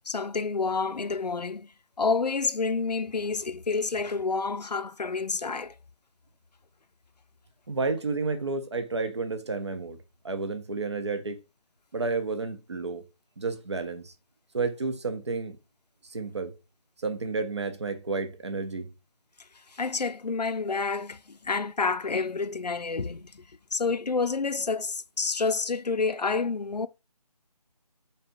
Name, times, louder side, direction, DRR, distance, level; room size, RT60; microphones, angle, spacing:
voice 1, 0.1-1.7 2.0-5.8 19.5-26.9, left 4 dB, 80° left, 0.5 m, -29 dB
voice 2, 7.7-10.0 10.2-11.4 11.9-13.0 13.4-14.1 14.5-15.6 16.0-16.5 17.0-18.9, right 4 dB, 45° right, 0.8 m, -31 dB
4.1 x 3.2 x 3.7 m
figure-of-eight pair, 160°, 20 cm